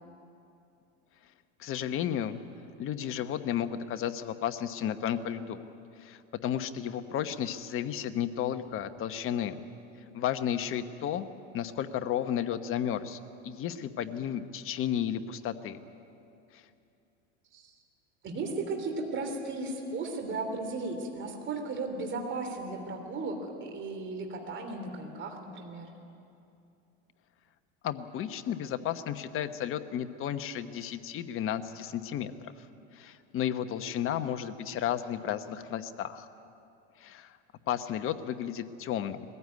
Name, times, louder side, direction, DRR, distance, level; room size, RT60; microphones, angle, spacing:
voice 1, 1.6-2.4 2.8-5.6 6.0-9.6 10.1-11.3 11.5-15.8 16.5-16.6 27.8-32.5 32.9-36.3 37.0-37.4 37.7-39.2, left 10 dB, 35° left, 9 dB, 1.1 m, -33 dB
voice 2, 18.2-25.9, right 3 dB, 30° right, 4 dB, 3.1 m, -35 dB
21.0 x 15.5 x 9.4 m, 2.7 s
supercardioid pair, 120°, 36 cm